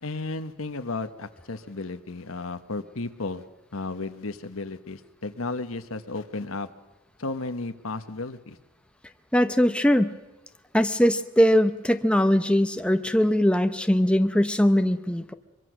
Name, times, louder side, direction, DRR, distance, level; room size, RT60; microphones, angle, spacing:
voice 1, 0.0-3.4 3.7-6.7 7.2-8.6, left 3 dB, 80° left, 9 dB, 1.2 m, -33 dB
voice 2, 9.3-10.2 10.7-15.3, equal, 5° left, 8 dB, 0.7 m, -21 dB
24.0 x 23.0 x 6.3 m, 1.1 s
head